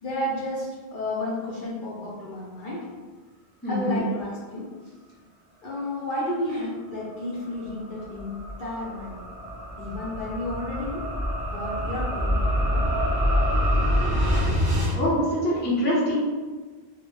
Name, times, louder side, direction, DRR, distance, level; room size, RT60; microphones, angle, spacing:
voice 1, 0.0-2.9 3.7-4.7 5.6-9.3 9.8-11.1 11.4-12.9, left 1 dB, 60° left, -5 dB, 0.6 m, -32 dB
voice 2, 3.6-4.0 14.9-16.2, equal, 15° left, -7 dB, 0.5 m, -24 dB
sound 1, 7.1-14.9, equal, 30° right, 0.9 m, -26 dB
2.0 x 2.0 x 3.0 m, 1.4 s
omnidirectional pair, 1.1 m